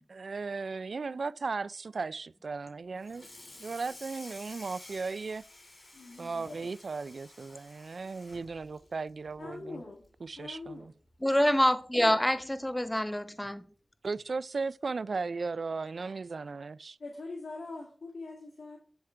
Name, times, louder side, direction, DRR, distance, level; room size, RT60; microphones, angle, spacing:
voice 1, 0.1-3.3 3.6-5.4 6.2-9.8 10.2-10.9 14.0-17.0, right 4 dB, 75° right, 0.3 m, -36 dB
Water tap faucet / Sink (filling or washing), 3.0-9.6 10.0-10.3 10.6-10.7 11.1-11.2 12.4-12.5 12.9-13.1, left 2 dB, 45° left, 3.4 m, -52 dB
voice 2, 5.9-6.7 9.4-10.0 10.4-10.9 17.0-18.8, left 3 dB, 85° left, 1.9 m, -43 dB
voice 3, 11.2-13.6, left 1 dB, 10° left, 0.6 m, -26 dB
10.5 x 3.7 x 4.5 m
wide cardioid pair, 55°, 0 cm